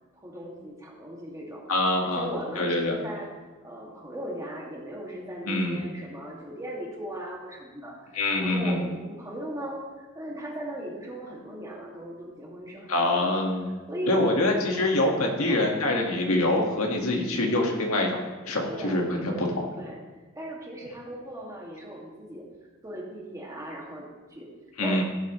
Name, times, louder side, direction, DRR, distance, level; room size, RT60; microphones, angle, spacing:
voice 1, 0.1-1.6 2.0-3.3 3.6-13.4 13.9-16.1 18.7-20.0 20.3-22.5 22.8-24.5 24.8-25.0, right 1 dB, 15° right, -3 dB, 2.2 m, -38 dB
voice 2, 1.7-2.3 2.6-3.0 5.5-5.8 8.1-8.8 12.9-13.7 14.1-19.6 24.8-25.0, left 2 dB, 75° left, 1 dB, 1.8 m, -25 dB
16.0 x 8.4 x 3.2 m, 1.3 s
head